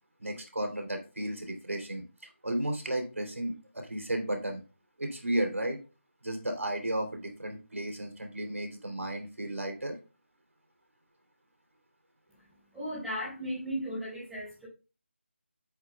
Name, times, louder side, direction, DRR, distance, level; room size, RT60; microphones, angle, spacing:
voice 1, 0.2-4.6 5.0-5.8 6.2-10.0, right 1 dB, 85° right, 4 dB, 3.2 m, -34 dB
voice 2, 12.7-14.7, equal, ahead, -9 dB, 4.8 m, -36 dB
10.5 x 8.5 x 2.3 m, 0.32 s
figure-of-eight pair, 165°, 7 cm